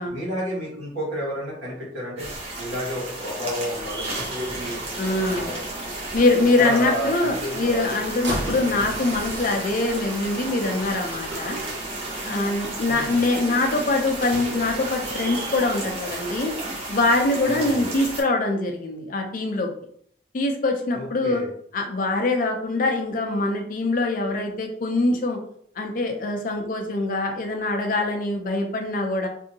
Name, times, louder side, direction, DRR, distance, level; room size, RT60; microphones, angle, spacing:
voice 1, 0.1-2.3 2.6-4.8 5.2-5.6 6.4-8.0 12.9-13.2 17.4-17.9 20.9-21.5, equal, 85° right, -6 dB, 1.5 m, -31 dB
sound 1, 2.2-18.2, right 2 dB, 30° right, 0.7 m, -34 dB
sound 2, 2.4-16.4, right 2 dB, 65° right, 0.9 m, -37 dB
voice 2, 5.0-5.5 6.1-11.6 12.2-16.5 16.9-19.7 20.3-21.4 21.7-25.4 25.8-29.3, left 2 dB, 45° left, 3 dB, 0.4 m, -23 dB
2.7 x 2.6 x 2.7 m, 0.66 s
head